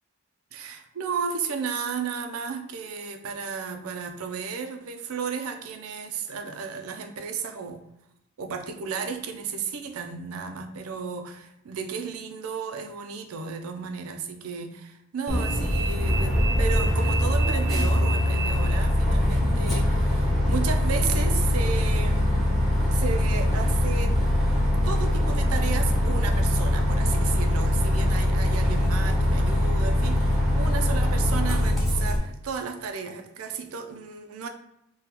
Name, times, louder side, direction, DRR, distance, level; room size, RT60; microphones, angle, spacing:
voice 1, 0.5-7.8 8.4-22.5 22.9-34.5, right 5 dB, 85° right, 6 dB, 0.4 m, -33 dB
Bus, 15.3-32.2, left 1 dB, ahead, 0.7 m, -22 dB
3.7 x 2.2 x 2.8 m, 0.82 s
head